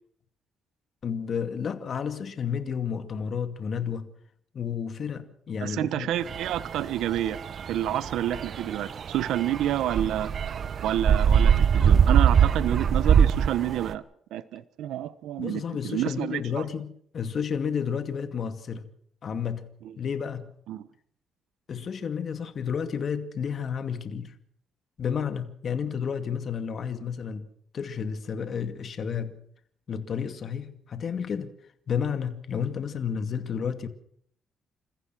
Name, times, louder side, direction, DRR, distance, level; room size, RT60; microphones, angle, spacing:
voice 1, 1.0-4.1 4.5-6.1 15.4-18.9 19.2-19.7 20.0-20.5 21.7-24.4 25.0-27.5 27.7-29.4 29.9-31.5 31.9-33.9, left 7 dB, 50° left, 2.3 m, -31 dB
voice 2, 5.6-7.4 7.7-10.3 10.8-14.0 14.3-16.6 20.7-20.8, right 12 dB, 85° right, 1.1 m, -29 dB
sound 1, 6.3-13.9, right 7 dB, 55° right, 1.2 m, -23 dB
29.0 x 15.0 x 6.3 m
cardioid pair, 90°, 0 cm